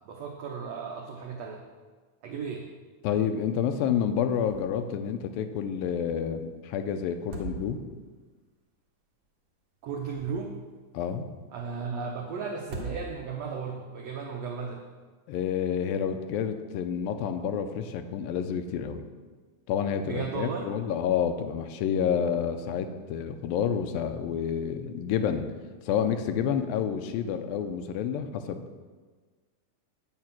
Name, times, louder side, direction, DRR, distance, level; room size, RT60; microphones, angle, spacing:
voice 1, 0.0-1.6 2.2-2.7 9.8-10.5 11.5-14.8 20.0-20.7, right 5 dB, 75° right, 1 dB, 1.5 m, -35 dB
voice 2, 3.0-7.8 10.9-11.3 15.3-19.0 19.7-25.5 25.9-28.8, left 8 dB, 85° left, 8 dB, 2.4 m, -29 dB
sound 1, 4.3-4.8 5.1-5.2 7.1-8.1 9.8-10.7 12.5-13.5, right 2 dB, 55° right, 1.4 m, -41 dB
9.6 x 7.8 x 5.9 m, 1.4 s
omnidirectional pair, 4.1 m